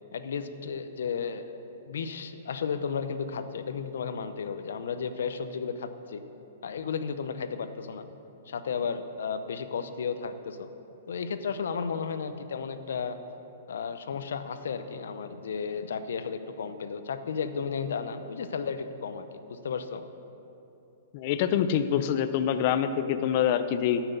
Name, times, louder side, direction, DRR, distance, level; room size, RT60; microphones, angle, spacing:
voice 1, 0.1-1.6 1.8-6.2 6.6-8.1 8.5-10.7 11.1-13.2 13.7-20.0, left 6 dB, 80° left, 10 dB, 0.7 m, -33 dB
voice 2, 21.1-24.0, left 9 dB, 40° left, 10 dB, 0.5 m, -25 dB
13.0 x 6.1 x 6.8 m, 2.9 s
hypercardioid pair, 165°, 0 cm